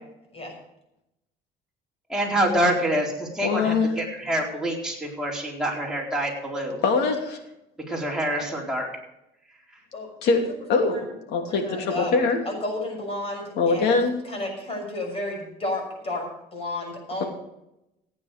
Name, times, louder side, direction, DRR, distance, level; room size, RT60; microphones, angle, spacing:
voice 1, 2.1-6.8 7.9-8.9, right 1 dB, 5° right, -3 dB, 4.3 m, -26 dB
voice 2, 3.4-3.9 6.8-7.4 10.2-10.4 10.7-12.4 13.6-14.1, left 4 dB, 80° left, 3 dB, 2.8 m, -22 dB
voice 3, 9.9-10.4 10.8-11.1 11.6-12.1 12.4-13.9 14.2-16.3 16.5-17.3, left 1 dB, 35° left, 2 dB, 6.5 m, -32 dB
15.5 x 9.6 x 5.2 m, 0.85 s
cardioid pair, 110°, 17 cm